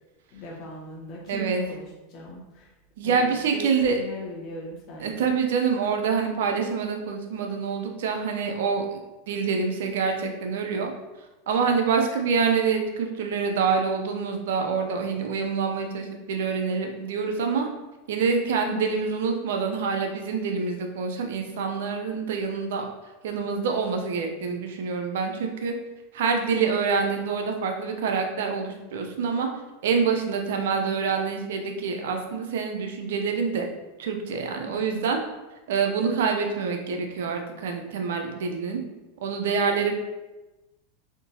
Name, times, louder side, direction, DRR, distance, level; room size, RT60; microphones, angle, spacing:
voice 1, 0.3-2.7 3.0-5.3 18.6-19.1 27.3-27.5 30.5-30.9 34.6-35.1 36.9-37.3, left 2 dB, 50° left, -2 dB, 1.1 m, -39 dB
voice 2, 1.3-1.6 3.0-4.0 5.0-9.0 9.3-10.9 11.5-17.7 18.1-22.9 23.2-25.7 26.1-29.5 29.8-33.7 34.0-35.2 35.7-38.8 39.2-39.9, right 5 dB, 75° right, 4 dB, 0.5 m, -26 dB
3.6 x 2.6 x 2.7 m, 1.1 s
hypercardioid pair, 110°, 0 cm